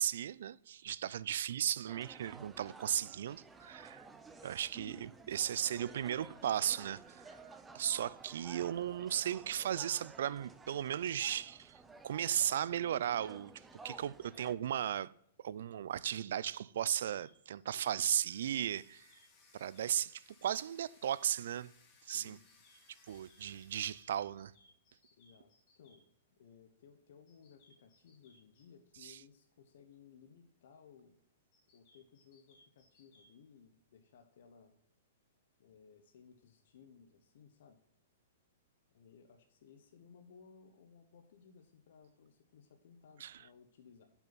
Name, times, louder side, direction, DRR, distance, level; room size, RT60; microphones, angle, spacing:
voice 1, 0.0-4.1 4.4-11.8 12.0-13.5 13.8-15.1 15.4-19.1 19.5-21.7 22.0-22.4 23.1-24.5 29.0-29.2 43.2-43.4, right 10 dB, 70° right, 0.3 m, -36 dB
sound 1, 1.9-14.6, right 3 dB, 10° right, 0.6 m, -54 dB
sound 2, 14.2-14.8 16.8-20.2 22.3-26.0 27.3-28.6 31.5-33.3, left 2 dB, 45° left, 3.3 m, -68 dB
Domestic sounds home sounds, 18.0-24.0, left 4 dB, 30° left, 1.9 m, -66 dB
voice 2, 22.0-22.4 25.2-26.0 26.3-31.2 31.7-34.7 35.6-37.8 38.9-44.1, left 6 dB, 65° left, 0.9 m, -60 dB
8.8 x 5.7 x 4.0 m
hypercardioid pair, 135°, 0 cm